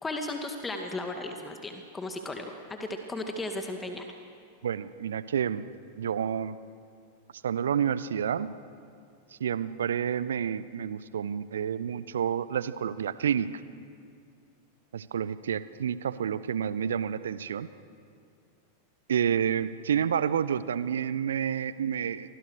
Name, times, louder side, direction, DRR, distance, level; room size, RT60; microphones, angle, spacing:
voice 1, 0.0-4.1, left 2 dB, 15° left, 4 dB, 2.1 m, -35 dB
voice 2, 4.6-5.7 6.0-6.6 7.4-8.5 9.4-13.5 14.9-17.7 19.1-22.3, right 8 dB, 65° right, 16 dB, 0.9 m, -29 dB
29.5 x 24.5 x 6.5 m, 2.4 s
figure-of-eight pair, 90°, 0 cm